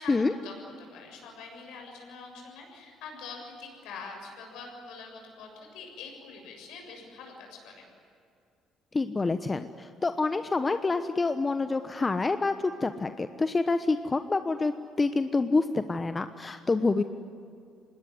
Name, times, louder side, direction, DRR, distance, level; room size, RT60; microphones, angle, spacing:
voice 1, 0.0-7.9, left 4 dB, 70° left, 2 dB, 7.2 m, -44 dB
voice 2, 8.9-17.0, left 3 dB, 30° left, 10 dB, 1.1 m, -27 dB
25.5 x 20.5 x 9.9 m, 2.5 s
hypercardioid pair, 50°, 0 cm